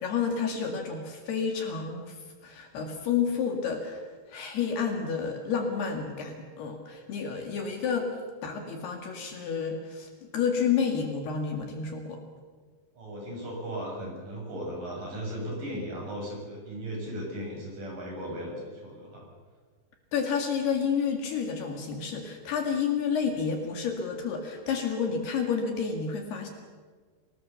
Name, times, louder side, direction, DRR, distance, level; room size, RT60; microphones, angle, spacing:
voice 1, 0.0-8.1 8.4-12.2 20.1-26.5, left 6 dB, 60° left, 3 dB, 3.8 m, -30 dB
voice 2, 13.0-19.3, equal, 45° right, -1 dB, 8.2 m, -36 dB
28.5 x 19.0 x 7.0 m, 1.5 s
omnidirectional pair, 5.5 m